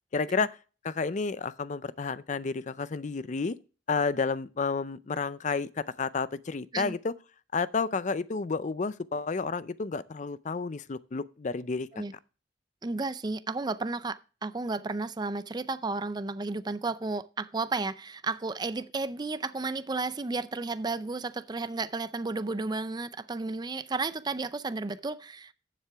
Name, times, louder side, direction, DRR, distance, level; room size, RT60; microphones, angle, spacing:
voice 1, 0.1-0.6 0.8-3.6 3.9-7.1 7.5-12.0, left 4 dB, 45° left, 0.5 m, -31 dB
voice 2, 12.8-25.5, right 3 dB, 25° right, 0.5 m, -33 dB
11.5 x 7.5 x 3.4 m
head